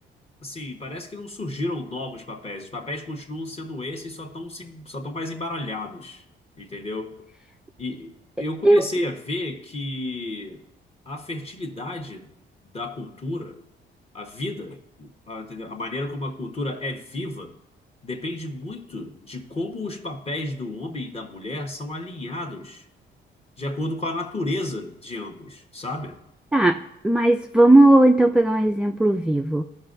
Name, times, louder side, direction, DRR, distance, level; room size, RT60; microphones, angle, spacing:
voice 1, 0.4-6.2 6.6-7.1 7.8-8.1 8.4-10.6 11.1-12.3 12.7-13.6 14.1-17.5 18.0-22.8 23.6-26.2, left 2 dB, 30° left, 3 dB, 1.2 m, -32 dB
voice 2, 8.6-9.1 26.5-29.6, right 1 dB, 5° right, 5 dB, 0.3 m, -17 dB
14.5 x 5.4 x 2.6 m, 0.86 s
cardioid pair, 90°, 20 cm